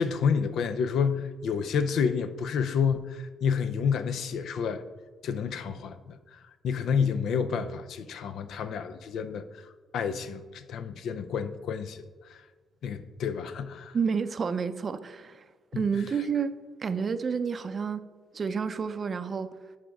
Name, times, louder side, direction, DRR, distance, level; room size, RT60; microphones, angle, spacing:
voice 1, 0.0-4.8 5.2-12.4 12.8-14.0 15.7-15.9, left 6 dB, 75° left, 0.4 m, -29 dB
voice 2, 13.9-15.4 15.7-16.5 16.8-18.0 18.3-19.5, right 6 dB, 40° right, 0.4 m, -29 dB
10.0 x 4.9 x 3.5 m
cardioid pair, 90°, 0 cm